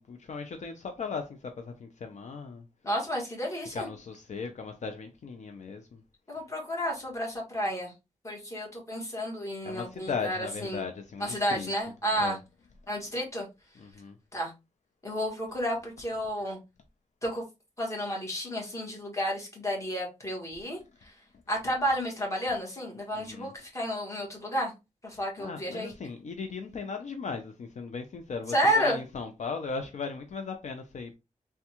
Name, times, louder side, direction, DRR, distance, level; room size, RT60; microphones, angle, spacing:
voice 1, 0.0-2.6 3.7-6.0 9.6-11.7 12.1-12.4 13.8-14.2 23.1-23.5 25.4-31.2, left 5 dB, 65° left, 0.4 m, -37 dB
voice 2, 2.8-3.9 6.3-7.9 8.2-10.8 11.2-12.4 12.9-13.5 14.3-14.5 15.0-16.6 17.2-17.4 17.8-21.1 21.5-24.7 25.0-25.9 28.5-29.0, equal, 25° left, 1.2 m, -31 dB
3.4 x 2.2 x 2.8 m
wide cardioid pair, 135°, 13 cm